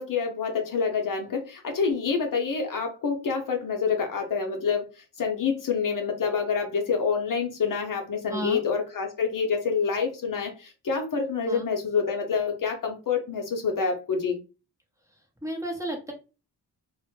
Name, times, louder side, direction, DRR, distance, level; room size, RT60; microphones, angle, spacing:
voice 1, 0.0-4.8 5.2-14.4, left 5 dB, 55° left, 3 dB, 0.7 m, -27 dB
voice 2, 8.3-8.6 11.5-11.7 15.4-16.1, equal, 10° right, 0 dB, 0.7 m, -32 dB
2.1 x 2.1 x 3.0 m, 0.31 s
cardioid pair, 55°, 40 cm